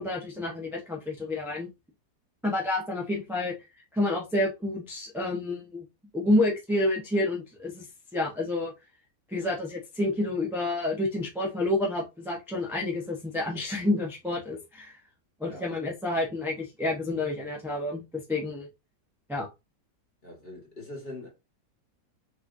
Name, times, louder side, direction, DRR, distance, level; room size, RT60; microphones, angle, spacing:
voice 1, 0.0-1.7 2.4-3.5 3.9-5.8 6.1-7.9 8.1-8.7 9.3-15.0 15.4-18.7 19.3-19.5, left 2 dB, ahead, 0.7 m, -29 dB
voice 2, 20.2-21.3, left 2 dB, 35° left, 1.7 m, -42 dB
5.9 x 3.2 x 2.6 m
omnidirectional pair, 1.9 m